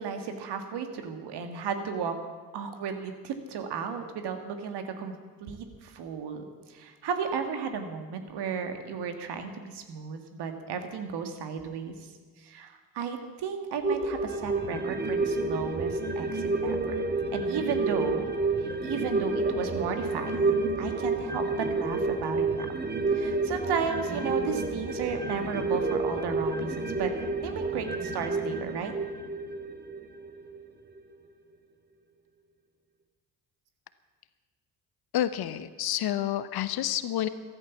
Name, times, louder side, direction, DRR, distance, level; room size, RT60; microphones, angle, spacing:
voice 1, 0.0-2.2 2.5-5.1 5.4-11.9 12.4-18.4 18.8-21.4 21.7-22.7 23.1-27.1 27.4-28.9, right 6 dB, 60° right, 7 dB, 2.0 m, -34 dB
sound 1, 13.8-30.6 31.0-31.1, right 3 dB, 20° right, 1.7 m, -29 dB
voice 2, 35.1-37.3, left 12 dB, 55° left, 13 dB, 1.0 m, -29 dB
14.0 x 12.5 x 7.2 m, 1.4 s
hypercardioid pair, 50°, 44 cm